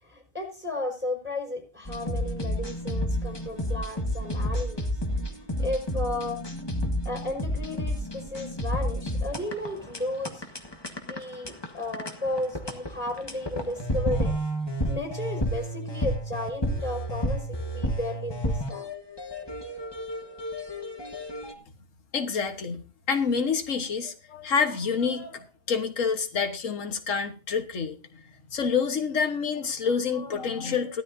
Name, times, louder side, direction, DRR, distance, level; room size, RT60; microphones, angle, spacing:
voice 1, 0.0-5.0 5.6-6.4 7.0-10.4 11.1-14.3 14.9-18.9, left 1 dB, 10° right, 2 dB, 4.7 m, -34 dB
sound 1, 1.9-21.5, equal, 20° left, 1.4 m, -31 dB
voice 2, 22.1-22.8 23.1-28.2 28.5-31.0, left 6 dB, 85° left, 6 dB, 1.7 m, -27 dB
17.5 x 12.5 x 2.7 m, 0.33 s
omnidirectional pair, 1.3 m